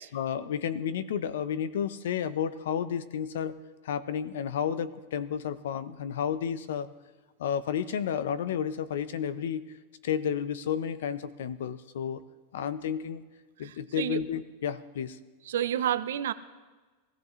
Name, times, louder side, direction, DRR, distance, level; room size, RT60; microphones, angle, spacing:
voice 1, 0.1-3.6 3.8-6.9 7.4-9.7 10.0-12.2 12.5-13.2 13.6-15.2, left 8 dB, 85° left, 15 dB, 0.8 m, -31 dB
voice 2, 13.6-14.2 15.5-16.3, right 10 dB, 90° right, 12 dB, 0.7 m, -30 dB
21.0 x 15.0 x 3.2 m, 1.3 s
supercardioid pair, 155°, 0 cm